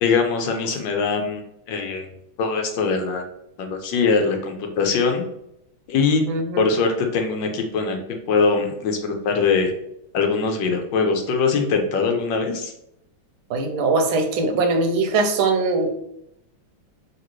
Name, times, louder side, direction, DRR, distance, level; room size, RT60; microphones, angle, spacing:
voice 1, 0.0-1.4 1.7-2.1 2.4-3.2 3.6-5.2 5.9-6.2 6.6-8.0 8.3-9.7 10.1-12.7, left 4 dB, 70° left, 4 dB, 1.3 m, -22 dB
voice 2, 6.3-6.6 13.5-15.9, right 3 dB, 85° right, 6 dB, 1.5 m, -21 dB
5.0 x 3.4 x 3.1 m, 0.78 s
omnidirectional pair, 2.2 m